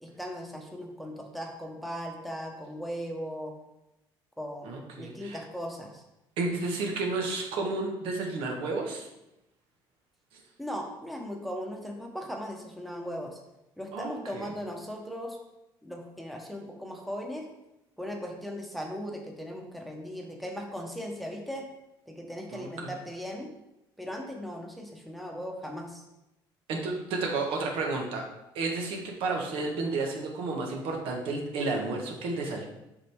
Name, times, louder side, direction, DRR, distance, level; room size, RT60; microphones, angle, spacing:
voice 1, 0.0-3.5 4.4-6.0 10.6-13.4 13.8-15.4 15.8-17.5 18.0-21.7 22.1-23.5 24.0-26.0, equal, ahead, 1 dB, 1.0 m, -38 dB
voice 2, 4.6-5.4 6.4-9.1 13.9-14.5 22.5-22.9 26.7-28.2 28.5-32.6, right 3 dB, 80° right, 1 dB, 1.4 m, -31 dB
7.4 x 5.1 x 3.6 m, 0.91 s
cardioid pair, 135°, 9 cm